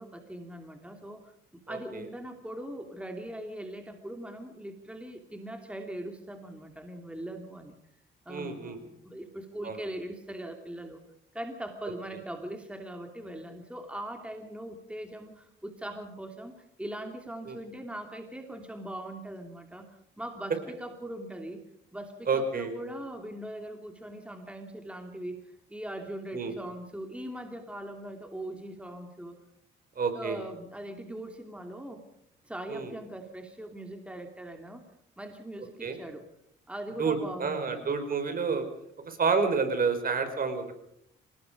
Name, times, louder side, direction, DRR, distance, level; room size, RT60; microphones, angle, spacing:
voice 1, 0.0-7.7 8.3-11.0 11.3-21.6 21.9-29.4 30.1-32.0 32.4-34.9 35.2-36.2 36.7-37.9, right 1 dB, 5° right, 4 dB, 2.8 m, -41 dB
voice 2, 1.7-2.0 8.3-8.8 9.6-9.8 17.5-17.6 22.3-22.7 26.3-26.5 29.9-30.4 32.7-32.9 35.8-36.0 37.0-38.6 39.0-40.8, right 5 dB, 45° right, 7 dB, 5.1 m, -29 dB
26.5 x 19.0 x 5.2 m, 0.72 s
cardioid pair, 90°, 20 cm